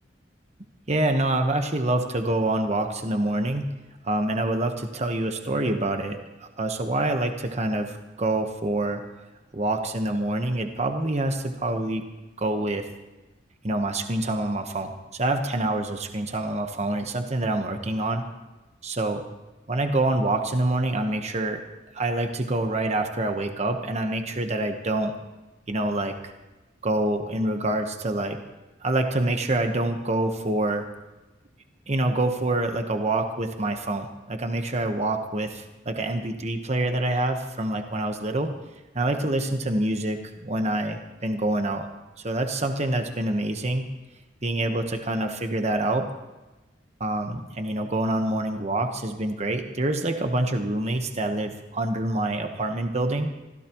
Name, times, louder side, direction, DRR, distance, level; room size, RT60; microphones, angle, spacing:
voice 1, 0.9-3.7 4.0-9.0 9.5-12.0 12.4-12.9 13.6-18.2 18.8-19.2 19.7-21.6 21.9-25.1 25.7-26.2 26.8-28.4 28.8-30.9 31.9-38.5 38.9-41.9 42.2-43.8 44.4-46.1 47.0-53.3, right 2 dB, 40° right, 5 dB, 1.2 m, -26 dB
25.0 x 16.0 x 3.1 m, 1.1 s
head